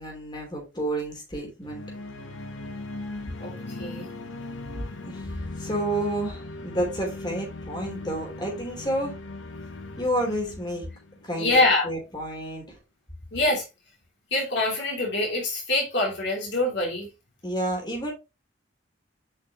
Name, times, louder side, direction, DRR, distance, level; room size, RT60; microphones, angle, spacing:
voice 1, 0.0-1.8 5.1-5.2 5.6-9.1 10.0-10.8 11.2-12.6 17.4-18.1, right 1 dB, 20° left, 3.2 m, -30 dB
sound 1, 1.6-11.7, left 2 dB, 85° left, 1.1 m, -39 dB
voice 2, 3.4-4.1 11.4-11.9 13.3-13.6 14.3-17.1, left 2 dB, 60° left, 3.1 m, -25 dB
7.6 x 5.6 x 3.1 m
head